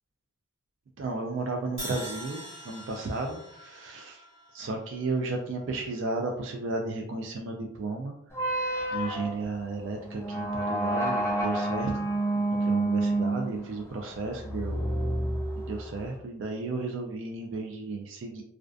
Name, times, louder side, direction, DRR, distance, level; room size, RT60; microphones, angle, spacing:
voice 1, 1.0-4.2 4.5-14.9 15.6-18.4, right 3 dB, 65° right, 1 dB, 0.3 m, -34 dB
Crash cymbal, 1.8-5.8, equal, 30° right, 1.2 m, -43 dB
sound 1, 8.3-16.1, right 1 dB, 15° left, 0.3 m, -29 dB
2.4 x 2.4 x 2.2 m, 0.72 s
head